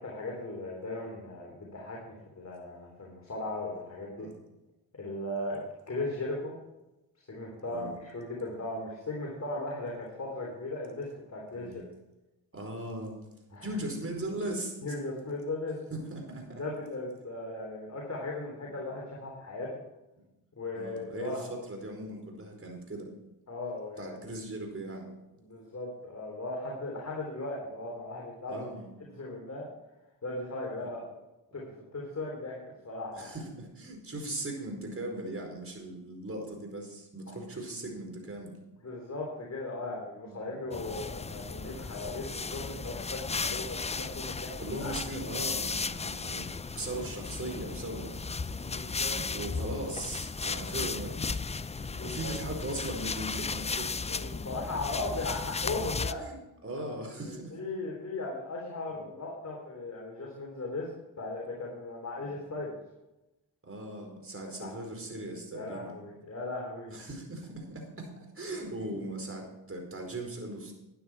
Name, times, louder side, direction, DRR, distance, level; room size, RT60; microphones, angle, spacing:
voice 1, 0.0-4.3 5.0-5.6 5.9-6.6 7.3-11.9 13.5-13.7 14.8-15.8 16.6-19.8 20.6-21.4 23.5-24.2 25.4-28.7 29.1-29.7 30.2-31.0 31.5-31.6 31.9-33.3 37.3-37.4 38.8-44.9 46.3-46.4 48.5-49.2 51.8-52.3 54.1-56.2 56.7-57.0 57.2-60.9 61.2-62.7 64.4-64.7 65.5-67.1 68.9-69.0, left 2 dB, 35° left, -2 dB, 3.5 m, -37 dB
voice 2, 12.5-13.2 13.6-14.8 15.9-16.6 18.6-18.8 20.2-20.3 20.7-23.1 24.0-25.1 28.5-28.9 30.8-30.9 31.6-31.7 33.1-38.5 40.3-40.5 43.3-43.6 44.6-46.5 46.7-48.7 49.1-51.5 52.0-53.9 55.6-55.7 56.2-57.6 58.9-59.1 62.2-62.4 63.6-66.0 66.9-70.7, right 1 dB, 30° right, 2 dB, 4.7 m, -39 dB
sound 1, 40.7-56.1, left 4 dB, 15° left, 0.5 m, -35 dB
12.5 x 9.4 x 4.7 m, 0.97 s
hypercardioid pair, 45°, 47 cm